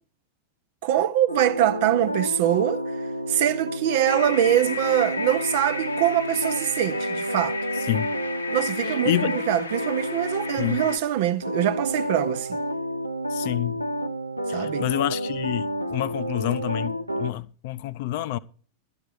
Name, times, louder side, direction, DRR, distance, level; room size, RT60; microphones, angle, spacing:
voice 1, 0.8-2.8 3.3-7.6 8.5-12.5 14.5-14.8, right 11 dB, 50° right, 0.8 m, -23 dB
sound 1, 1.3-11.0 11.4-17.3, equal, 90° right, 0.7 m, -30 dB
sound 2, 4.1-11.0, left 4 dB, 80° left, 1.1 m, -34 dB
voice 2, 8.8-9.4 10.6-10.8 13.3-13.8 14.5-18.4, left 14 dB, 50° left, 0.6 m, -28 dB
12.5 x 9.1 x 4.9 m
figure-of-eight pair, 90°, 0 cm